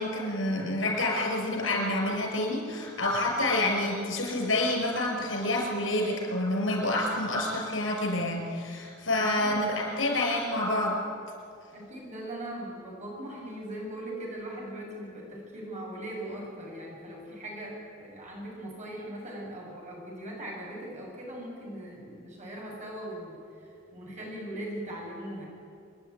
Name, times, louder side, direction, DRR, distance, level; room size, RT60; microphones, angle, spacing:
voice 1, 0.0-11.0, left 1 dB, 90° left, 0 dB, 6.0 m, -28 dB
voice 2, 9.1-9.6 11.7-25.4, right 1 dB, 40° right, -3 dB, 6.9 m, -40 dB
26.5 x 10.5 x 9.4 m, 2.4 s
head